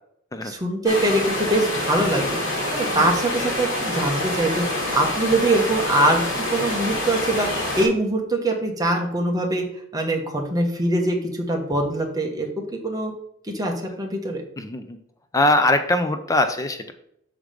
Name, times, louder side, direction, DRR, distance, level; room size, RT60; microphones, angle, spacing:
voice 1, 0.4-6.2 6.5-9.6 9.9-13.1 13.4-13.7 14.0-14.4, right 1 dB, 20° right, 2 dB, 1.1 m, -23 dB
sound 1, 0.8-7.8, left 1 dB, 60° left, 2.8 m, -26 dB
voice 2, 14.6-15.0 15.3-16.9, left 2 dB, 15° left, 8 dB, 0.4 m, -22 dB
6.3 x 4.9 x 5.0 m, 0.74 s
head